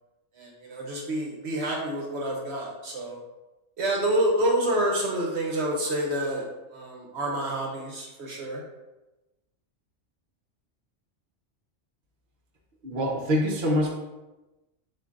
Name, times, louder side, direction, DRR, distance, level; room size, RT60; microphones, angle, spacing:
voice 1, 0.4-3.2 3.8-6.4 6.7-8.6, right 1 dB, 65° right, -2 dB, 1.1 m, -28 dB
voice 2, 12.8-13.9, equal, 50° right, -2 dB, 0.9 m, -25 dB
7.6 x 2.6 x 2.5 m, 1.0 s
omnidirectional pair, 1.3 m